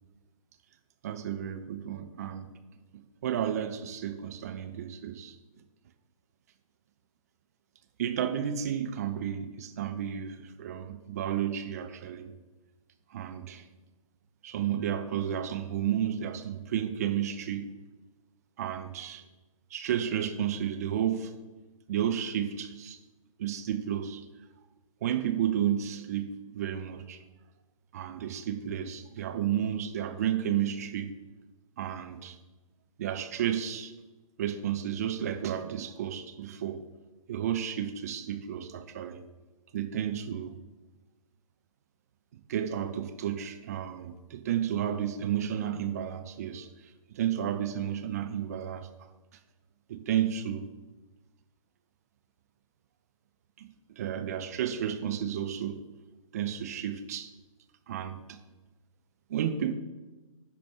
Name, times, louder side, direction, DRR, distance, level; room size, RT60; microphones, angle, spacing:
voice 1, 1.0-2.5 2.9-5.4 8.0-12.3 13.1-13.6 14.4-17.7 18.6-19.2 19.7-21.4 21.9-23.0 23.4-24.3 25.0-27.2 27.9-31.1 31.8-32.4 33.0-33.9 34.4-36.8 37.3-39.2 39.7-40.5 42.5-46.7 47.1-48.9 49.9-50.7 53.6-55.8 56.3-57.3 57.9-58.4 59.3-59.7, right 9 dB, 25° right, 8 dB, 0.6 m, -32 dB
11.0 x 4.2 x 6.3 m, 1.2 s
figure-of-eight pair, 135°, 18 cm